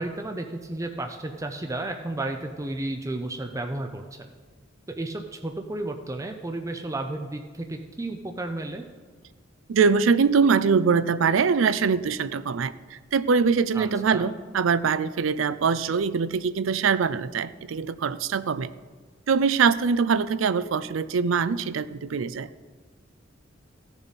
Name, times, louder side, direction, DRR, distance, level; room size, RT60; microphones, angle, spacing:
voice 1, 0.0-4.3 4.9-8.8 13.7-14.3, right 2 dB, 15° right, 5 dB, 0.5 m, -33 dB
voice 2, 9.7-12.7 13.1-18.7 19.3-22.5, right 5 dB, 90° right, 16 dB, 0.4 m, -23 dB
15.0 x 7.1 x 4.1 m, 1.5 s
head